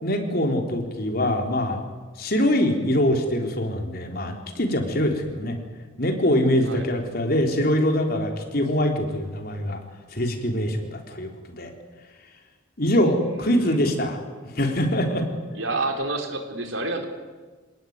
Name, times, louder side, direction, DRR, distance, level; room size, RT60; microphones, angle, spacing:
voice 1, 0.0-1.8 2.2-5.5 6.0-9.8 10.1-11.7 12.8-14.2 14.6-15.3, left 1 dB, 50° left, 3 dB, 3.8 m, -23 dB
voice 2, 13.1-13.8 15.5-17.1, right 2 dB, 85° right, 4 dB, 3.9 m, -29 dB
27.5 x 19.0 x 9.6 m, 1.4 s
head